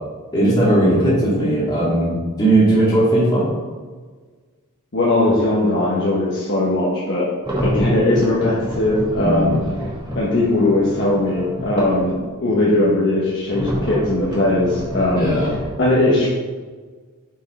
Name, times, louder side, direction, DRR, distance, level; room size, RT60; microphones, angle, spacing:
voice 1, 0.3-2.1 2.4-3.5 9.2-9.5 15.1-15.5, right 1 dB, 20° left, -8 dB, 1.9 m, -17 dB
voice 2, 4.9-7.3 7.6-9.5 10.1-12.2 12.4-15.3 15.8-16.3, left 2 dB, 55° left, -7 dB, 1.2 m, -19 dB
sound 1, 7.4-12.2 13.5-15.7, equal, 20° right, 1.7 m, -28 dB
5.5 x 5.5 x 4.1 m, 1.4 s
head